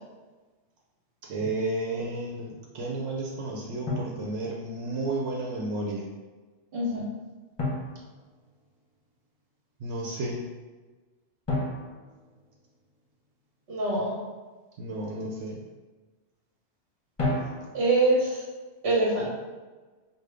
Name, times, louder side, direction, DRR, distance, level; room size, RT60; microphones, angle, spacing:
voice 1, 1.3-6.0 9.8-10.5 14.8-15.6, right 2 dB, 85° right, -2 dB, 0.9 m, -32 dB
Drum, 1.4-1.7 3.9-5.0 7.6-9.0 11.5-13.2 17.2-18.1, left 2 dB, 30° left, 1.0 m, -33 dB
voice 2, 6.7-7.1 13.7-14.2 17.7-18.4 18.8-19.3, right 2 dB, 55° right, -4 dB, 1.2 m, -24 dB
5.1 x 2.3 x 3.3 m, 1.3 s
omnidirectional pair, 1.2 m